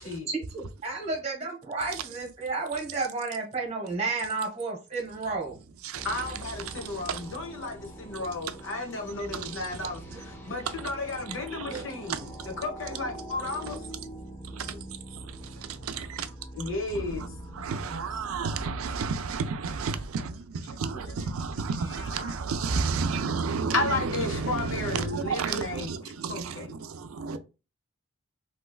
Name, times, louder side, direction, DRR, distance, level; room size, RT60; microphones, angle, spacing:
voice 1, 0.3-5.6 11.7-11.8, right 3 dB, 30° right, 1.2 m, -32 dB
voice 2, 1.9-2.9 5.2-7.5 8.1-8.6 9.1-10.9 11.3-12.6 13.4-16.3 16.7-27.4, right 5 dB, 85° right, 0.4 m, -34 dB
sound 1, 5.9-20.0, right 1 dB, 10° left, 0.7 m, -44 dB
voice 3, 6.0-12.2 12.6-13.8 16.6-17.3 23.7-25.9 26.3-26.8, left 3 dB, 65° left, 0.9 m, -33 dB
3.3 x 2.8 x 2.3 m
head